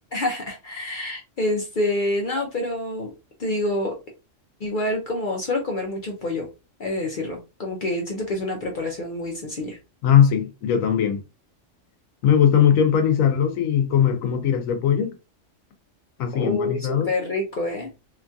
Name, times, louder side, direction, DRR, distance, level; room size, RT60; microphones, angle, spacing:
voice 1, 0.1-3.1 3.4-4.0 4.6-6.5 6.8-9.8 16.3-17.9, left 1 dB, 55° left, 0.6 m, -27 dB
voice 2, 10.0-11.2 12.2-15.1 16.2-17.1, left 8 dB, 90° left, 1.1 m, -19 dB
2.9 x 2.2 x 2.6 m
omnidirectional pair, 1.4 m